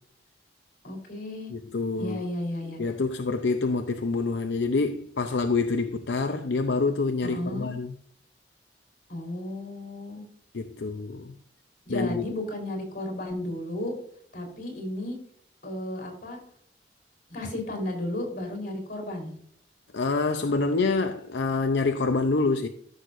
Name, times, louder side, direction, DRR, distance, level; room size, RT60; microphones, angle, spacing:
voice 1, 0.8-1.5 2.0-2.8 7.2-7.7 9.1-10.2 11.9-13.9 14.3-15.2 15.6-16.4 17.3-19.3, left 1 dB, 55° left, 3.9 m, -33 dB
voice 2, 1.5-2.2 2.8-7.9 10.5-11.3 11.9-12.3 19.9-22.7, left 3 dB, 80° left, 0.6 m, -26 dB
14.0 x 6.5 x 2.6 m
head